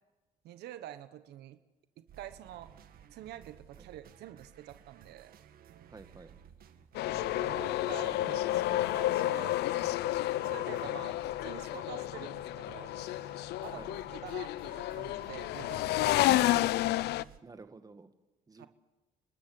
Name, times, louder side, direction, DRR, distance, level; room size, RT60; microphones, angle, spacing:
voice 1, 0.4-1.6 2.0-2.7 3.1-5.3 7.2-12.9 13.6-16.5 18.6-18.7, right 12 dB, 75° right, 11 dB, 1.3 m, -47 dB
sound 1, 2.1-17.4, right 9 dB, 60° right, 2.0 m, -56 dB
voice 2, 5.9-6.3 13.7-13.9 17.4-18.1 18.5-18.7, right 4 dB, 20° right, 8 dB, 2.0 m, -51 dB
sound 2, 6.9-17.2, left 15 dB, 75° left, 0.6 m, -31 dB
30.0 x 13.5 x 7.9 m, 1.1 s
cardioid pair, 110°, 17 cm